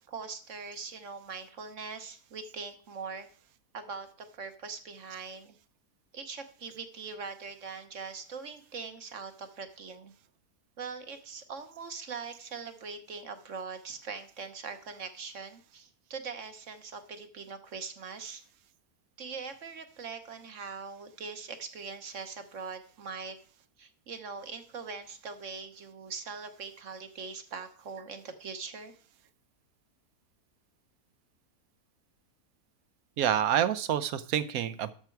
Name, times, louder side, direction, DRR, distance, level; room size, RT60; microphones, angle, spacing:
voice 1, 0.1-3.3 3.7-5.6 6.1-10.1 10.8-18.4 19.2-23.4 23.8-29.0, right 5 dB, 55° right, 8 dB, 1.4 m, -42 dB
voice 2, 33.2-34.9, right 10 dB, 70° right, 14 dB, 1.2 m, -27 dB
12.5 x 6.0 x 4.6 m, 0.43 s
omnidirectional pair, 1.6 m